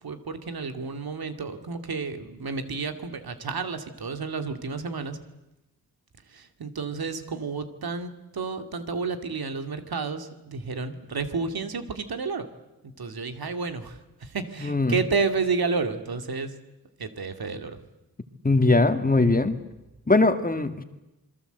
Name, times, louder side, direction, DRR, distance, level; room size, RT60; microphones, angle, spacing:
voice 1, 0.0-5.2 6.3-12.5 13.0-16.5 17.0-17.8, right 4 dB, 85° right, 8 dB, 2.4 m, -31 dB
voice 2, 14.6-15.0 18.4-19.5 20.1-20.8, left 2 dB, 25° left, 8 dB, 2.1 m, -21 dB
27.5 x 22.5 x 8.1 m, 0.98 s
wide cardioid pair, 85°, 36 cm